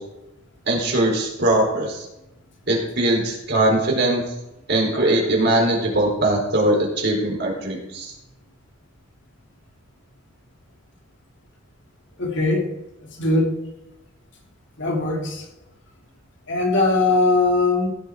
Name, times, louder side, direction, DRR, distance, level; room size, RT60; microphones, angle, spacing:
voice 1, 0.7-2.0 2.7-4.2 4.7-8.1, right 1 dB, 50° right, -1 dB, 4.3 m, -21 dB
voice 2, 12.2-12.7 13.2-13.5 14.8-15.4 16.5-17.9, left 2 dB, 55° left, 0 dB, 2.8 m, -20 dB
17.0 x 6.6 x 4.9 m, 0.89 s
head